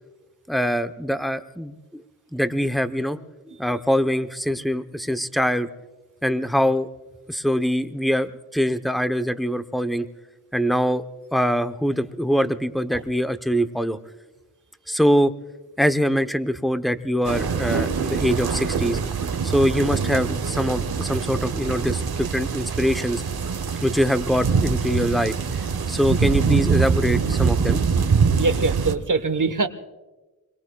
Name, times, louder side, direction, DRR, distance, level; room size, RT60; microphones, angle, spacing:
voice 1, 0.5-1.7 2.3-3.2 3.5-5.7 6.2-6.9 7.3-10.0 10.5-11.0 11.3-14.0 14.9-15.3 15.8-19.0 19.4-23.2 23.8-25.3 25.9-27.8, equal, ahead, 10 dB, 0.7 m, -23 dB
sound 1, 17.2-29.0, right 5 dB, 90° right, 1.0 m, -24 dB
voice 2, 28.3-29.7, right 3 dB, 55° right, 11 dB, 1.1 m, -23 dB
27.5 x 22.5 x 2.3 m, 1.2 s
wide cardioid pair, 75°, 36 cm